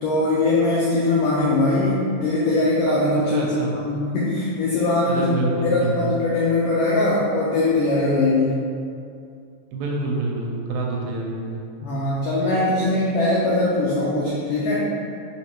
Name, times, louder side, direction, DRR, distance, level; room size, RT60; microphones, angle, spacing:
voice 1, 0.0-5.3 5.6-8.6 11.8-14.8, left 2 dB, 90° left, -6 dB, 1.3 m, -21 dB
voice 2, 3.3-3.8 5.1-6.1 9.7-11.6, right 2 dB, 80° right, -2 dB, 1.9 m, -27 dB
4.6 x 3.5 x 2.9 m, 2.5 s
omnidirectional pair, 3.5 m